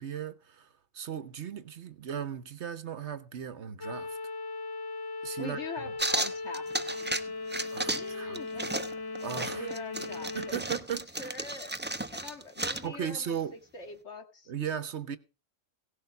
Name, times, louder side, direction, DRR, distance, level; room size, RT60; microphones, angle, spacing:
voice 1, 0.0-4.2 5.2-5.8 7.7-8.4 9.2-9.7 10.3-11.3 12.8-13.6 14.5-15.2, right 8 dB, 60° right, 1.1 m, -37 dB
sound 1, 3.8-10.5, left 3 dB, 35° left, 0.3 m, -38 dB
voice 2, 5.4-6.7 7.0-7.1 7.6-8.7 9.5-10.6 11.2-11.7 12.1-14.5, left 3 dB, 60° left, 2.1 m, -43 dB
sound 2, 6.0-7.2 7.5-8.1 8.3-12.9, right 2 dB, 10° right, 0.6 m, -34 dB
17.0 x 6.7 x 5.9 m
omnidirectional pair, 1.4 m